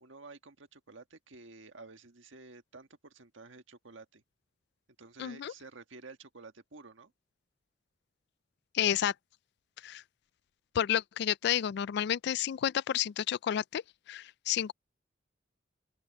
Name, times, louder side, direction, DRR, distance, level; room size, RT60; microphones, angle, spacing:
voice 1, 0.0-4.2 5.0-7.1, right 3 dB, 80° right, 1.5 m, -51 dB
voice 2, 5.2-5.5 8.7-9.1 9.8-10.0 10.7-13.8 14.1-14.7, left 10 dB, 60° left, 0.3 m, -30 dB
open air
head